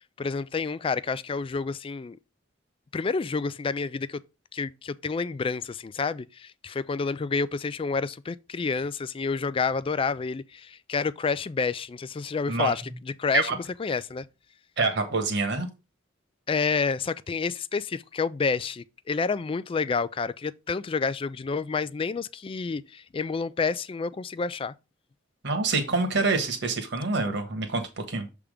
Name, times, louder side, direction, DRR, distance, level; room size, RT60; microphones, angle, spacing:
voice 1, 0.2-2.2 2.9-4.2 4.5-12.8 13.2-14.3 16.5-24.7, left 4 dB, 30° left, 0.3 m, -29 dB
voice 2, 14.8-15.7 25.4-28.3, right 3 dB, 60° right, 1.4 m, -26 dB
7.0 x 3.6 x 5.0 m
head